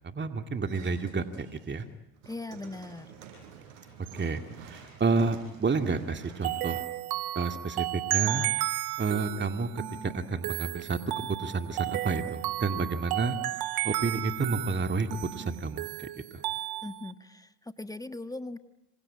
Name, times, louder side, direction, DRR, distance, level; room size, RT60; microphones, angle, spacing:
voice 1, 0.1-1.8 4.1-6.9 7.4-8.5 9.0-11.0 11.4-13.4 13.8-16.4, right 4 dB, 30° right, 7 dB, 2.2 m, -30 dB
sound 1, 0.6-1.8 2.1-7.4, right 6 dB, 90° right, 5.8 m, -50 dB
voice 2, 2.2-3.2 16.8-18.6, left 2 dB, 10° left, 10 dB, 1.5 m, -40 dB
sound 2, 6.4-17.1, right 16 dB, 65° right, 1.3 m, -33 dB
26.5 x 25.5 x 8.7 m, 0.88 s
hypercardioid pair, 65°, 39 cm